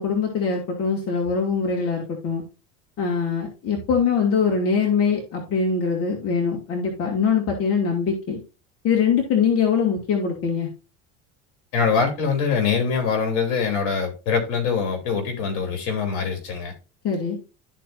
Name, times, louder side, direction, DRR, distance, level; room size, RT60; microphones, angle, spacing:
voice 1, 0.0-2.4 3.0-8.4 8.8-10.7 17.0-17.4, left 6 dB, 45° left, 2.3 m, -22 dB
voice 2, 11.7-16.7, left 5 dB, 65° left, 3.2 m, -23 dB
13.0 x 4.5 x 2.6 m
supercardioid pair, 115°, 32 cm